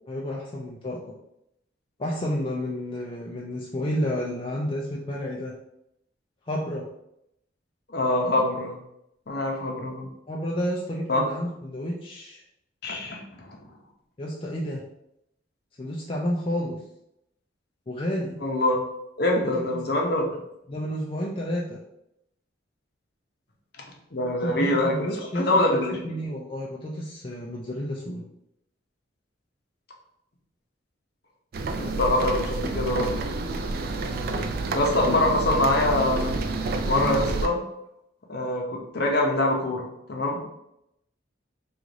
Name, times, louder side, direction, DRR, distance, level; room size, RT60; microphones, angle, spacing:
voice 1, 0.1-1.1 2.0-5.5 6.5-6.8 9.7-9.8 10.3-12.4 14.2-14.8 15.8-16.8 17.9-18.4 19.5-19.8 20.7-21.8 24.2-28.2 35.0-35.2 36.9-37.2, equal, 30° left, -3 dB, 0.4 m, -31 dB
voice 2, 7.9-8.8 9.3-10.1 11.1-11.2 12.8-13.5 18.4-18.8 19.2-20.2 24.1-25.1 25.3-26.0 31.7-33.2 34.7-36.3 36.9-37.6 38.3-40.5, left 1 dB, 55° left, 0 dB, 0.7 m, -24 dB
sound 1, 31.5-37.5, right 3 dB, 50° right, 0.3 m, -29 dB
3.1 x 2.4 x 3.9 m, 0.80 s
head